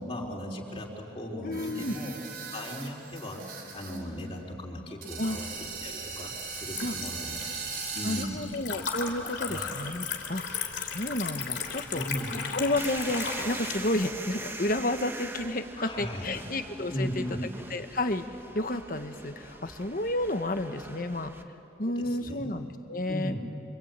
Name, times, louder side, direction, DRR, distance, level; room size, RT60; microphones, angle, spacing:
voice 1, 0.0-2.2 2.5-3.4 3.7-5.5 5.8-7.6 7.9-8.4 9.4-9.7 11.9-12.4 15.8-16.4 16.9-17.5 21.9-22.5 23.1-23.4, equal, 30° left, -1 dB, 3.8 m, -37 dB
voice 2, 1.4-1.9 5.2-5.4 6.8-6.9 8.0-10.4 10.8-12.0 12.5-17.4 17.7-18.2 18.5-21.3 21.8-23.4, left 1 dB, 50° left, 8 dB, 1.3 m, -31 dB
sound 1, 1.5-4.0 4.3-4.4 5.0-8.2, right 5 dB, 60° right, 4.2 m, -39 dB
Liquid, 5.4-13.7, left 6 dB, 80° left, 3.0 m, -36 dB
sound 2, 12.8-21.4, right 2 dB, 15° right, 1.2 m, -42 dB
26.5 x 24.5 x 9.0 m, 2.6 s
head